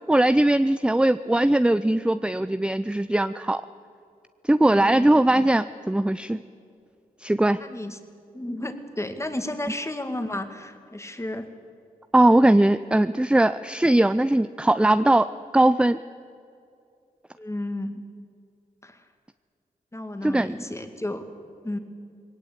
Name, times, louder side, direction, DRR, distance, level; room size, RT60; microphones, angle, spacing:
voice 1, 0.1-3.6 4.4-6.4 7.2-7.6 12.1-15.3 15.5-16.0 20.2-20.6, right 1 dB, 5° right, 13 dB, 0.5 m, -20 dB
voice 2, 4.7-5.1 7.6-8.0 8.3-11.5 17.4-18.0 18.8-19.1 19.9-21.3 21.6-21.8, left 1 dB, 20° left, 8 dB, 2.2 m, -32 dB
20.0 x 18.0 x 8.7 m, 2.4 s
cardioid pair, 60°, 15 cm